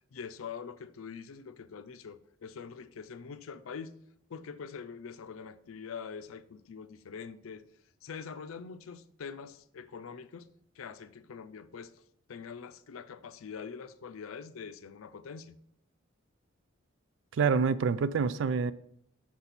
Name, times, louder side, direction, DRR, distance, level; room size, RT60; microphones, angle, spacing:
voice 1, 0.1-4.0 4.3-7.6 8.0-10.5 10.8-12.0 12.3-15.6, left 6 dB, 85° left, 0.5 m, -44 dB
voice 2, 17.3-18.7, right 5 dB, 65° right, 0.4 m, -27 dB
6.1 x 4.1 x 5.9 m
head